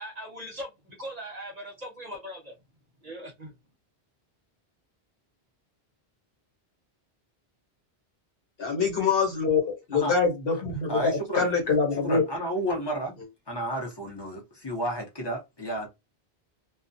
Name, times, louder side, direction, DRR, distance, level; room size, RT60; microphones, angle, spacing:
voice 1, 0.0-2.5 3.0-3.5, equal, 45° right, 0.8 m, -40 dB
voice 2, 8.6-11.0 11.3-12.2, left 5 dB, 60° left, 1.2 m, -24 dB
voice 3, 10.9-11.5 12.0-13.1 13.5-15.9, equal, 25° left, 0.8 m, -31 dB
2.3 x 2.2 x 2.6 m
omnidirectional pair, 1.1 m